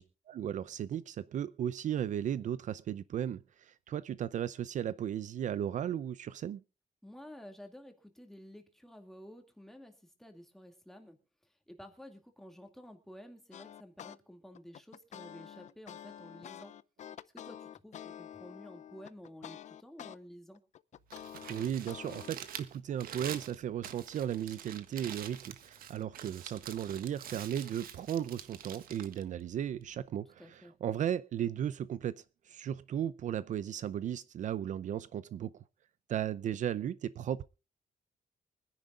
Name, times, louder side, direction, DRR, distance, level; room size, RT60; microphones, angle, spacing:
voice 1, 0.0-6.6 21.5-35.5 36.1-37.4, right 10 dB, 60° right, 0.5 m, -36 dB
voice 2, 7.0-11.2 11.4-16.8 17.3-20.6 30.4-30.7, equal, ahead, 2.3 m, -52 dB
sound 1, 13.5-14.2 14.5-20.2 20.5-22.3, left 10 dB, 55° left, 0.6 m, -48 dB
Crumpling crinkling, 20.9-30.1, right 9 dB, 90° right, 1.5 m, -47 dB
24.5 x 10.5 x 2.5 m
wide cardioid pair, 160°, 15 cm